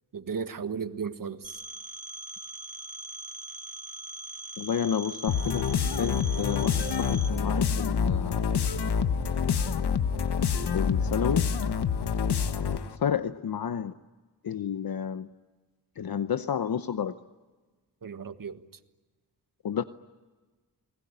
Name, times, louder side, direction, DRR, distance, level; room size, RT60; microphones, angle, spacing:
voice 1, 0.1-1.6 18.0-18.6, right 6 dB, 55° right, 9 dB, 1.5 m, -35 dB
Telephone, 1.4-7.3, right 2 dB, 20° right, 5.0 m, -41 dB
voice 2, 4.6-8.5 10.7-11.5 13.0-13.9 14.4-15.3 16.0-17.2 19.6-19.8, left 8 dB, 65° left, 11 dB, 0.9 m, -30 dB
sound 1, 5.3-13.0, left 6 dB, 80° left, 1.3 m, -27 dB
30.0 x 20.5 x 9.7 m, 1.3 s
wide cardioid pair, 105°, 39 cm